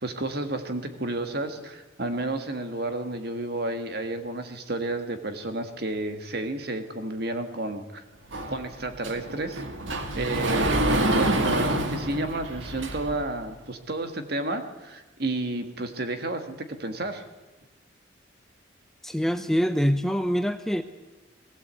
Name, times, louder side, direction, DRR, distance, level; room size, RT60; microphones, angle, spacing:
voice 1, 0.0-8.0 8.5-9.6 10.1-10.7 11.2-17.2, right 2 dB, 55° right, 7 dB, 1.7 m, -31 dB
Sliding door, 8.3-13.3, right 1 dB, 75° right, 1.8 m, -27 dB
voice 2, 19.0-20.8, equal, ahead, 9 dB, 0.6 m, -24 dB
20.5 x 16.0 x 8.3 m, 1.1 s
head